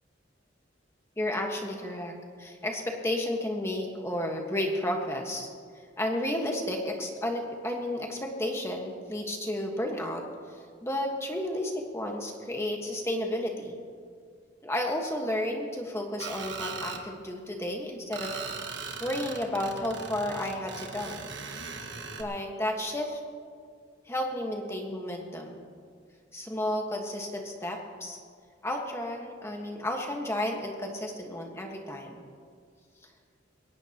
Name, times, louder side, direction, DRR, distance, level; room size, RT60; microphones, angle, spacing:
voice 1, 1.2-5.5 6.0-10.2 10.8-13.8 14.6-18.5 19.0-21.2 22.2-23.2 24.1-25.6 26.3-28.2 28.6-32.2, left 1 dB, 15° left, 1 dB, 1.5 m, -32 dB
Screech, 16.2-17.0 18.1-22.2, right 4 dB, 65° right, 1.5 m, -39 dB
21.5 x 18.5 x 3.0 m, 2.1 s
head